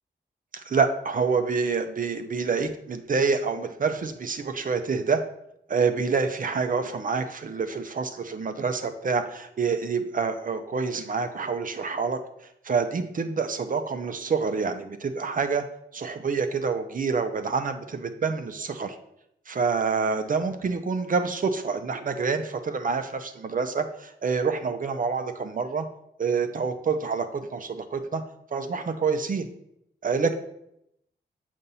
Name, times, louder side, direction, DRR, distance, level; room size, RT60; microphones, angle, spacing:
voice 1, 0.5-5.2 5.7-12.2 12.6-15.6 15.9-19.0 19.5-25.9 26.2-28.2 28.5-29.5 30.0-30.3, right 5 dB, 50° right, 8 dB, 0.5 m, -27 dB
6.8 x 2.5 x 5.5 m, 0.76 s
wide cardioid pair, 100°, 18 cm